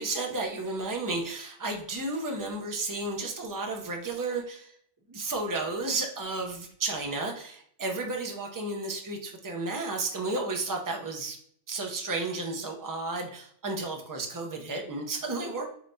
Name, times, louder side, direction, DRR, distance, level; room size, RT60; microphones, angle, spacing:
voice 1, 0.0-4.7 5.1-11.4 11.7-15.6, right 3 dB, 30° right, 2 dB, 0.4 m, -32 dB
4.6 x 3.3 x 2.6 m, 0.63 s
omnidirectional pair, 1.3 m